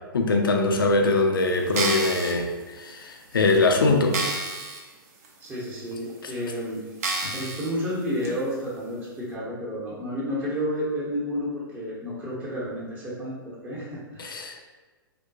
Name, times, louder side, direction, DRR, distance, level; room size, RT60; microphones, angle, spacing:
voice 1, 0.1-4.2 6.2-6.3 7.2-7.4 14.2-14.6, left 3 dB, 70° left, 3 dB, 0.5 m, -22 dB
sound 1, 1.6-2.3 3.0-3.1 3.6-3.7 4.1-4.8 5.2-5.3 6.1-6.2 7.0-7.7 8.2-8.3, right 3 dB, 40° right, 0.5 m, -29 dB
voice 2, 5.4-6.8 7.3-14.3, equal, 15° right, -7 dB, 0.8 m, -31 dB
3.7 x 2.1 x 2.7 m, 1.3 s
figure-of-eight pair, 115°, 12 cm